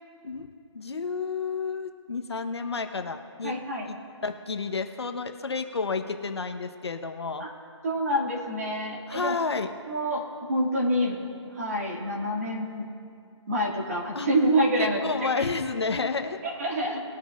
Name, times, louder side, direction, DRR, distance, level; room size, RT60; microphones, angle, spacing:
voice 1, 0.7-3.5 3.9-4.0 4.2-7.4 9.1-9.7 14.1-14.3 14.8-16.4, left 4 dB, 60° left, 6 dB, 1.0 m, -30 dB
voice 2, 3.4-3.9 7.4-7.5 7.8-9.4 9.9-11.2 11.4-12.9 13.5-15.5 16.4-17.0, right 1 dB, 30° right, -2 dB, 2.1 m, -27 dB
21.0 x 9.6 x 2.5 m, 2.4 s
hypercardioid pair, 175°, 16 cm